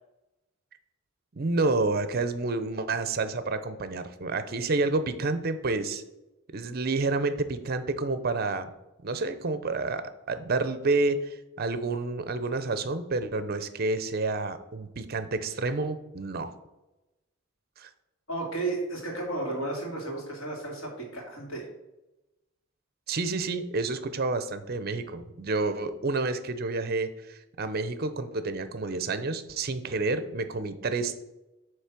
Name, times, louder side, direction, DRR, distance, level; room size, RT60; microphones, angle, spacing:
voice 1, 1.4-6.0 6.5-8.7 9.0-10.0 10.3-16.5 17.8-17.9 23.1-31.1, right 3 dB, 50° right, 11 dB, 0.6 m, -29 dB
voice 2, 18.3-21.7, right 2 dB, 90° left, 0 dB, 2.2 m, -33 dB
7.9 x 3.3 x 5.8 m, 0.99 s
head